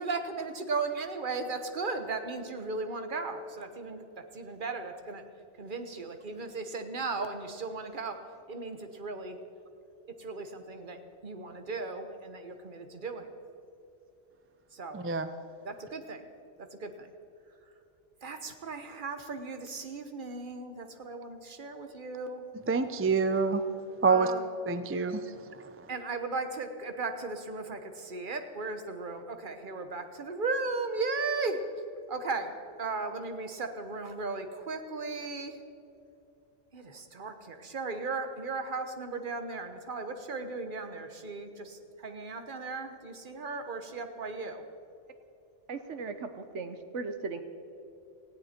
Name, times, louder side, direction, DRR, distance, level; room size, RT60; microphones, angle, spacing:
voice 1, 0.0-5.2 5.6-8.2 8.5-9.4 10.2-13.3 14.7-15.0 15.6-16.2 16.6-17.1 18.2-22.4 24.1-24.5 25.9-31.6 32.1-32.5 32.8-35.6 36.7-44.6, right 3 dB, 45° right, 7 dB, 1.3 m, -36 dB
voice 2, 14.9-15.3 22.7-23.6 24.0-24.3 24.7-25.2, right 4 dB, 15° right, 10 dB, 0.4 m, -26 dB
voice 3, 45.7-47.4, right 4 dB, 75° right, 9 dB, 1.3 m, -37 dB
18.5 x 15.5 x 4.4 m, 2.7 s
omnidirectional pair, 1.2 m